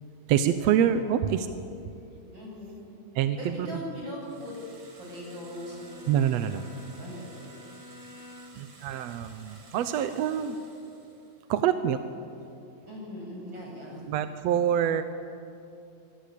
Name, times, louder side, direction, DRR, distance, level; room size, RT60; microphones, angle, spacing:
voice 1, 0.3-1.5 3.2-3.7 6.1-6.7 8.6-10.6 11.5-12.0 14.1-15.0, right 9 dB, 75° right, 10 dB, 1.6 m, -26 dB
voice 2, 2.3-2.8 3.4-4.6 5.0-6.4 6.6-7.5 12.9-14.1, equal, 30° right, -3 dB, 8.7 m, -40 dB
sound 1, 4.2-11.5, right 3 dB, 50° right, 3.8 m, -54 dB
Bowed string instrument, 4.8-8.8, left 1 dB, 45° left, 0.8 m, -50 dB
25.5 x 22.0 x 8.5 m, 2.6 s
omnidirectional pair, 3.9 m